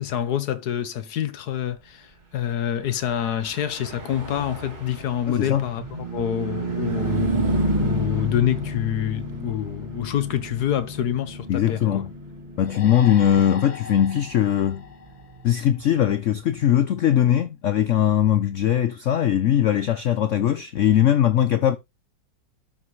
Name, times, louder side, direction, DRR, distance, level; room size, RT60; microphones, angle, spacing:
voice 1, 0.0-5.8 6.1-7.4 7.8-12.0, left 10 dB, 65° left, 1.3 m, -26 dB
Car passing by / Truck, 3.0-16.7, right 1 dB, 25° right, 2.2 m, -31 dB
voice 2, 5.3-5.7 11.5-12.1 12.6-14.8 15.4-21.8, left 10 dB, 80° left, 0.6 m, -20 dB
sound 1, 12.6-16.1, left 6 dB, 35° left, 0.7 m, -40 dB
12.0 x 5.9 x 3.1 m
omnidirectional pair, 2.0 m